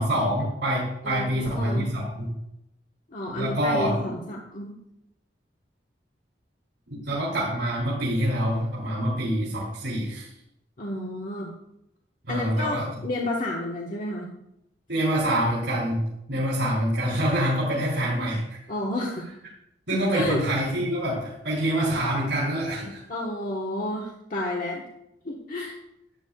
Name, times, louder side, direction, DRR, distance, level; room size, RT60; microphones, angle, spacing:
voice 1, 0.0-2.3 3.4-3.9 6.9-10.3 12.2-12.9 14.9-16.0 16.3-18.6 19.9-23.0 25.5-25.7, right 1 dB, 80° right, -6 dB, 3.1 m, -26 dB
voice 2, 1.0-1.9 3.1-4.7 10.8-11.5 12.3-14.3 18.7-19.3 20.1-20.4 23.1-24.8 25.2-25.7, left 1 dB, 50° left, -2 dB, 1.2 m, -31 dB
12.5 x 9.1 x 2.3 m, 0.82 s
head